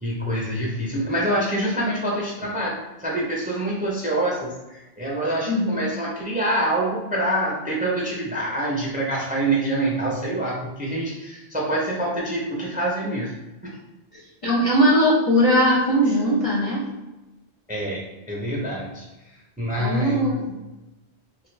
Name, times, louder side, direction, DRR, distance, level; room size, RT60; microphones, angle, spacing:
voice 1, 0.0-13.3 13.6-13.8 17.7-20.3, right 1 dB, 10° right, -3 dB, 0.5 m, -26 dB
voice 2, 5.5-5.9 14.4-16.8 19.8-20.6, equal, 40° left, -5 dB, 0.6 m, -20 dB
3.0 x 2.5 x 3.2 m, 1.0 s
omnidirectional pair, 1.1 m